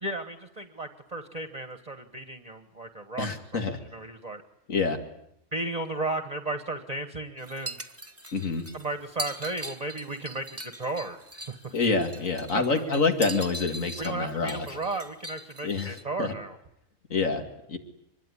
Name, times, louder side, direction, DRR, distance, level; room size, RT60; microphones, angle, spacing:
voice 1, 0.0-3.3 3.9-4.4 5.5-7.8 8.7-11.7 12.5-12.8 14.0-16.6, right 2 dB, 30° right, 8 dB, 1.5 m, -34 dB
voice 2, 3.2-3.8 4.7-5.0 8.3-8.7 11.7-14.7 15.6-16.3 17.1-17.8, left 4 dB, 65° left, 6 dB, 2.8 m, -27 dB
sound 1, 7.4-16.0, right 1 dB, 10° right, 1.7 m, -41 dB
25.0 x 21.5 x 9.9 m, 0.76 s
omnidirectional pair, 1.5 m